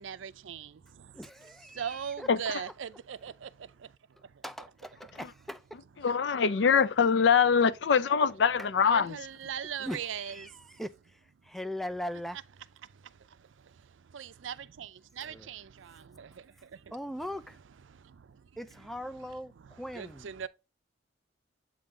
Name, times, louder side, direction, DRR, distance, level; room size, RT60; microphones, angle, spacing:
voice 1, 0.0-1.3 1.7-4.4 8.8-10.8 12.8-16.9 17.9-18.6 19.6-20.5, right 8 dB, 85° right, 0.5 m, -41 dB
voice 2, 1.1-2.3 4.4-5.8 8.6-8.7 9.8-12.4 15.2-15.5 16.9-17.6 18.6-20.3, equal, ahead, 0.4 m, -40 dB
voice 3, 6.0-9.2, left 6 dB, 65° left, 0.5 m, -23 dB
7.8 x 3.7 x 3.7 m
head